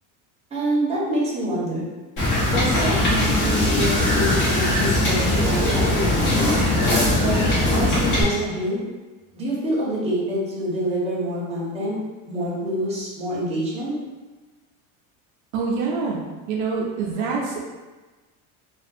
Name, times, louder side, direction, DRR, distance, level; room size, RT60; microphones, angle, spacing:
voice 1, 0.5-1.9 2.5-6.7 7.2-7.4 7.7-8.8 9.3-12.0 12.3-13.9, right 1 dB, 15° right, -6 dB, 0.7 m, -26 dB
Wind / Boat Water vehicle, 2.2-8.2, left 1 dB, 45° left, 1.0 m, -20 dB
voice 2, 15.5-17.6, right 4 dB, 65° right, -2 dB, 0.5 m, -26 dB
2.4 x 2.2 x 2.6 m, 1.2 s
cardioid pair, 130°, 41 cm